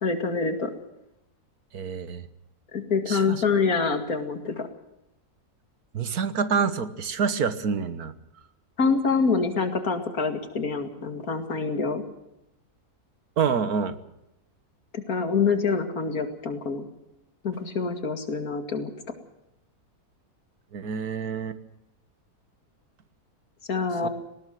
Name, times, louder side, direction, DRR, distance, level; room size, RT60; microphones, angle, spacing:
voice 1, 0.0-0.7 2.7-4.7 8.8-12.0 15.1-16.9 17.4-18.9 23.7-24.1, left 4 dB, 70° left, 7 dB, 2.7 m, -26 dB
voice 2, 1.7-2.3 3.1-3.4 5.9-8.1 13.4-14.0 20.7-21.6 23.9-24.1, right 6 dB, 75° right, 13 dB, 1.8 m, -27 dB
19.5 x 18.5 x 7.7 m, 0.86 s
omnidirectional pair, 1.6 m